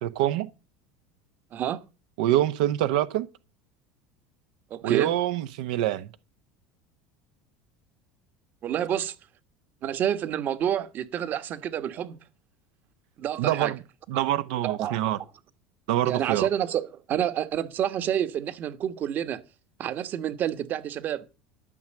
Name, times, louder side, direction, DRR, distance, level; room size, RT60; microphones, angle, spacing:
voice 1, 0.0-0.5 2.2-3.3 4.8-6.1 13.4-13.8 14.1-15.2 15.9-16.5, right 13 dB, 80° right, 0.8 m, -25 dB
voice 2, 4.7-5.1 8.6-9.1 9.8-12.2 13.2-13.7 14.6-15.0 16.0-19.4 19.8-21.2, right 10 dB, 45° right, 1.3 m, -28 dB
12.5 x 6.2 x 7.7 m
supercardioid pair, 110°, 4 cm